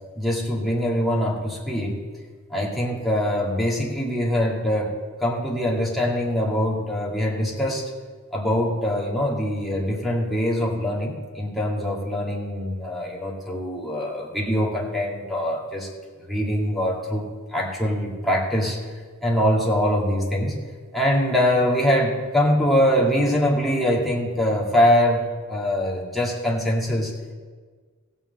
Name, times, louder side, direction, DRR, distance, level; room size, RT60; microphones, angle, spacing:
voice 1, 0.2-2.0 2.5-4.9 5.2-7.8 8.3-15.9 16.3-17.2 17.5-18.8 19.2-20.6 20.9-27.1, equal, ahead, -4 dB, 2.1 m, -23 dB
16.0 x 5.6 x 7.8 m, 1.5 s
head